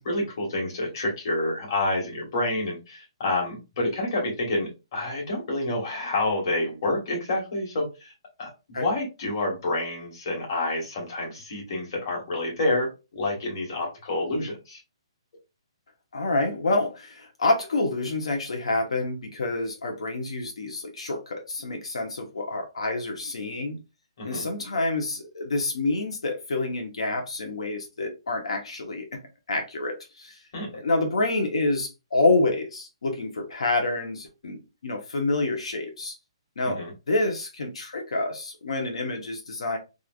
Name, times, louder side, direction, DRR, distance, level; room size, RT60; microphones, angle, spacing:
voice 1, 0.0-8.1 8.4-14.8 24.2-24.5 30.5-30.7 36.6-36.9, left 2 dB, 40° left, 1.4 m, -28 dB
voice 2, 16.1-23.8 24.2-29.2 29.5-30.4 30.8-36.1 36.6-36.8 37.1-39.8, left 2 dB, 85° left, 0.9 m, -27 dB
3.1 x 2.5 x 2.4 m
hypercardioid pair, 170°, 3 cm